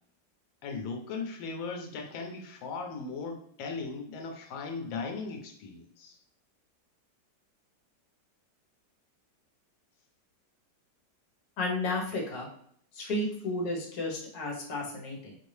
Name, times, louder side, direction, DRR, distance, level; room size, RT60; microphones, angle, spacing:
voice 1, 0.6-6.2, left 4 dB, 90° left, 3 dB, 1.4 m, -38 dB
voice 2, 11.6-12.5 12.9-15.4, left 2 dB, 55° left, -1 dB, 1.5 m, -32 dB
4.8 x 2.6 x 3.2 m, 0.64 s
omnidirectional pair, 2.0 m